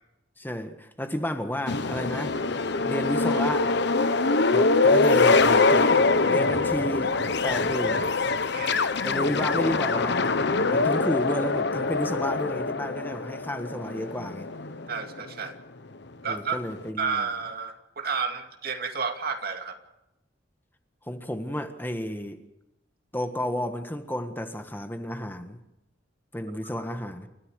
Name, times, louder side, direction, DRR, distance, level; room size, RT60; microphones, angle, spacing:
voice 1, 0.4-2.4 2.8-3.7 4.5-6.0 6.2-8.1 9.0-10.4 10.7-14.5 16.2-17.3 21.0-22.4 23.1-25.6 26.3-27.3, left 1 dB, 10° left, 1.6 m, -32 dB
sound 1, 1.7-15.3, left 3 dB, 65° left, 1.2 m, -24 dB
voice 2, 8.5-8.9 14.9-15.5 16.2-16.6 17.0-19.8, right 5 dB, 55° right, 2.4 m, -31 dB
29.5 x 14.5 x 6.5 m
head